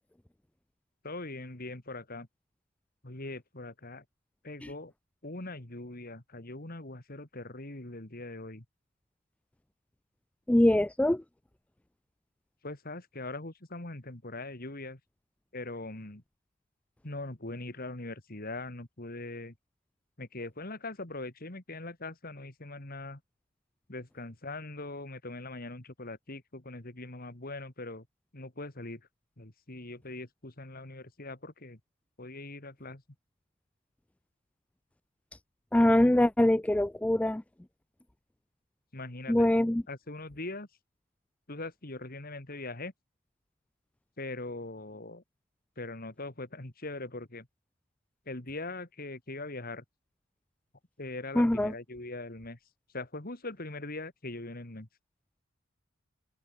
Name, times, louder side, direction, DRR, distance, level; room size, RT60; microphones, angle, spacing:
voice 1, 1.0-2.3 3.0-4.0 4.4-4.9 5.2-8.6 12.6-15.0 15.5-16.2 17.0-19.5 20.2-23.2 23.9-28.1 28.3-29.1 29.4-31.8 32.2-33.0 38.9-39.5 39.9-40.7 41.5-42.9 44.2-45.2 45.8-47.5 48.3-49.8 51.0-52.6 52.9-54.9, left 2 dB, 45° left, 2.4 m, -41 dB
voice 2, 10.5-11.2 35.7-37.4 39.3-39.8 51.4-51.7, left 1 dB, 5° left, 0.3 m, -23 dB
head